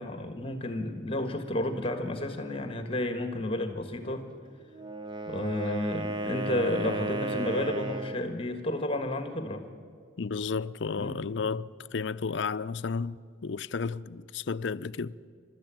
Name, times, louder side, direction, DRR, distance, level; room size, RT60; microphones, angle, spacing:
voice 1, 0.0-4.3 5.3-9.6 11.0-11.2, left 1 dB, 30° left, 1.5 m, -31 dB
Wind instrument woodwind instrument, 4.7-8.3, right 2 dB, 25° right, 0.8 m, -34 dB
voice 2, 10.2-15.2, left 5 dB, 65° left, 0.5 m, -33 dB
28.0 x 13.0 x 8.9 m
head